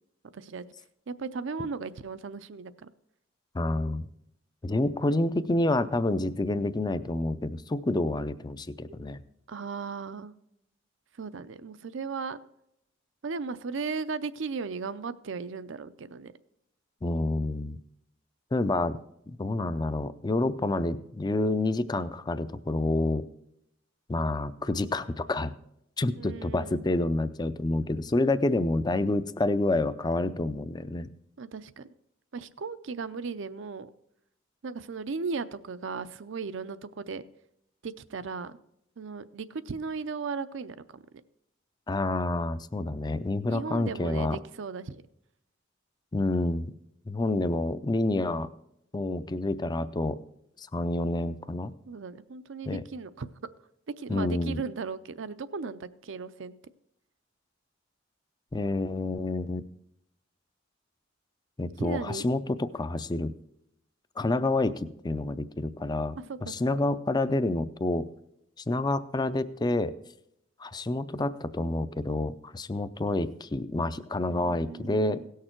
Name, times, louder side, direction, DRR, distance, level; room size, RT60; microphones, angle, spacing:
voice 1, 0.3-0.6 1.1-2.9 9.5-10.3 11.2-12.4 13.2-16.3 26.1-26.8 31.4-31.9 32.3-33.9 34.6-37.2 37.8-38.6 39.0-41.0 43.5-45.0 51.9-53.3 54.0-56.5 61.8-62.3 66.2-66.5 74.3-75.3, right 4 dB, 65° right, 14 dB, 0.5 m, -36 dB
voice 2, 3.5-4.1 4.6-9.2 17.0-17.8 18.5-19.0 19.3-23.3 24.1-25.5 26.0-31.1 41.9-44.4 46.1-46.7 47.1-48.5 48.9-50.2 50.6-51.7 52.7-52.8 54.1-54.6 58.5-59.6 61.6-63.3 64.2-68.1 68.6-69.9 70.6-75.2, left 2 dB, 20° left, 13 dB, 0.4 m, -28 dB
17.0 x 6.6 x 4.5 m, 0.79 s
head